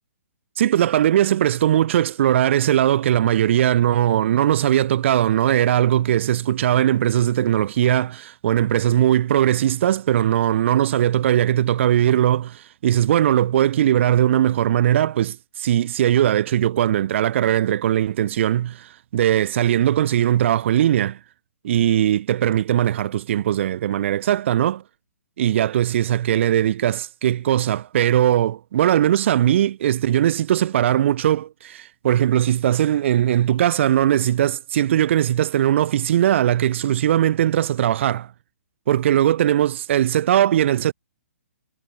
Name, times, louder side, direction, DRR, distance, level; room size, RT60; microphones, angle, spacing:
voice 1, 0.6-21.2 21.6-24.8 25.4-38.3 38.9-40.9, right 11 dB, 50° right, 0.4 m, -19 dB
hypercardioid pair, 135°, 8 cm